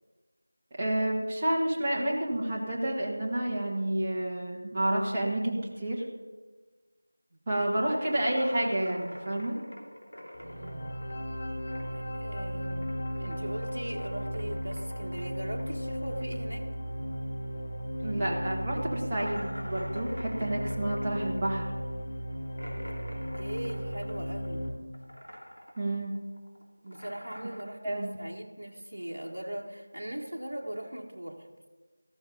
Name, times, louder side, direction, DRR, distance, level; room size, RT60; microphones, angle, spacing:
voice 1, 0.8-6.0 7.5-9.6 18.0-21.7 25.8-26.1 27.8-28.1, right 1 dB, 15° right, -4 dB, 1.5 m, -29 dB
sound 1, 7.9-12.2 12.4-17.5 17.7-17.8 18.2-18.3 19.1-24.7 24.9-25.9 26.1-27.6, equal, 90° left, 2.8 m, -46 dB
sound 2, 10.3-24.7, equal, 30° left, 1.1 m, -35 dB
voice 2, 10.4-11.0 11.8-12.9 13.1-16.7 17.9-18.4 22.8-22.9 23.4-24.7 26.8-31.7, right 1 dB, 55° right, 0 dB, 1.5 m, -40 dB
14.0 x 13.0 x 4.0 m, 1.3 s
figure-of-eight pair, 170°, 0 cm